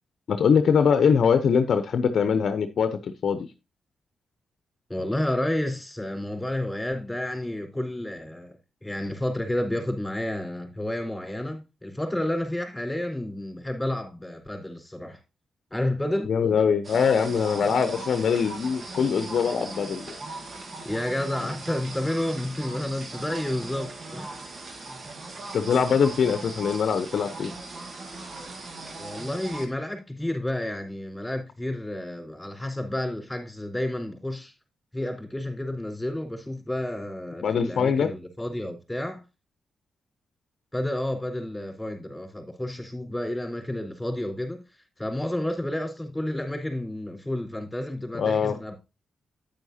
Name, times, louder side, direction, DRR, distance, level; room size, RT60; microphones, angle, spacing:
voice 1, 0.3-3.5 16.2-20.2 25.5-27.5 37.4-38.1 48.1-48.6, left 6 dB, 65° left, 0.8 m, -23 dB
voice 2, 4.9-15.2 15.7-16.3 20.8-24.3 29.0-34.5 34.9-39.2 40.7-44.6 45.0-48.8, left 1 dB, 10° left, 4.1 m, -30 dB
sound 1, 16.8-29.7, right 3 dB, 50° right, 2.0 m, -39 dB
9.3 x 9.1 x 2.8 m
supercardioid pair, 50°, 0 cm